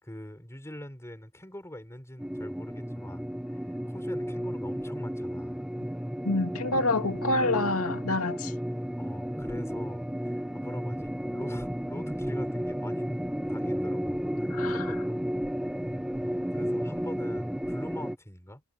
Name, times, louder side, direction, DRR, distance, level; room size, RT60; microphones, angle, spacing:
voice 1, 0.0-3.2 3.5-5.6 9.0-13.1 13.5-15.8 16.1-16.2 16.5-18.6, left 1 dB, 10° left, 5.9 m, -44 dB
sound 1, 2.2-18.2, equal, 5° right, 0.8 m, -32 dB
voice 2, 6.2-8.5 14.5-14.9, left 2 dB, 70° left, 2.6 m, -27 dB
head